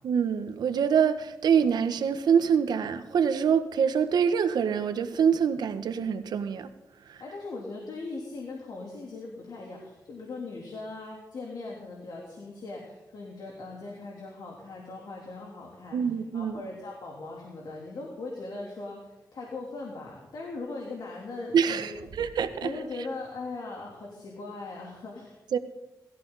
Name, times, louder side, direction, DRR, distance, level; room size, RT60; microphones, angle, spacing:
voice 1, 0.0-6.7 7.1-7.2 15.9-16.6 21.5-22.7 25.5-25.6, right 7 dB, 85° right, 1.1 m, -25 dB
voice 2, 7.2-22.0 22.6-25.4, left 3 dB, 75° left, 3.2 m, -39 dB
19.0 x 14.0 x 4.0 m
cardioid pair, 70°, 7 cm